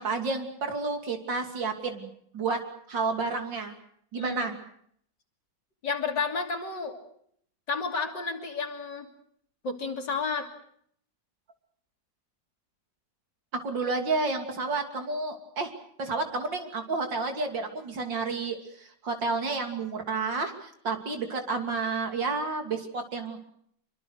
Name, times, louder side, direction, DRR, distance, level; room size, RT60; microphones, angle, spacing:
voice 1, 0.0-2.6 2.9-3.8 4.1-4.6 13.6-15.7 16.0-23.4, right 4 dB, 80° right, 5 dB, 3.6 m, -30 dB
voice 2, 4.1-4.5 5.8-7.0 7.7-9.1 9.6-10.5, left 4 dB, 70° left, 4 dB, 3.6 m, -31 dB
25.5 x 24.0 x 6.5 m, 0.67 s
omnidirectional pair, 2.0 m